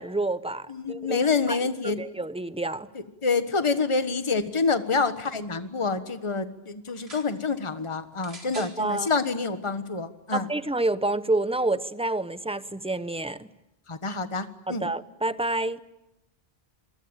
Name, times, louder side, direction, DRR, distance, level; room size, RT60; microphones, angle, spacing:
voice 1, 0.0-1.2 1.5-1.6 1.8-2.9 8.6-9.1 10.3-13.5 14.7-15.8, right 2 dB, 5° right, 13 dB, 0.8 m, -28 dB
voice 2, 0.7-2.0 2.9-10.5 13.9-14.9, left 4 dB, 30° left, 10 dB, 1.5 m, -27 dB
sound 1, 6.9-7.3 8.2-8.8 9.7-9.8, right 2 dB, 85° right, 4.4 m, -45 dB
27.5 x 23.0 x 9.0 m, 0.91 s
omnidirectional pair, 1.0 m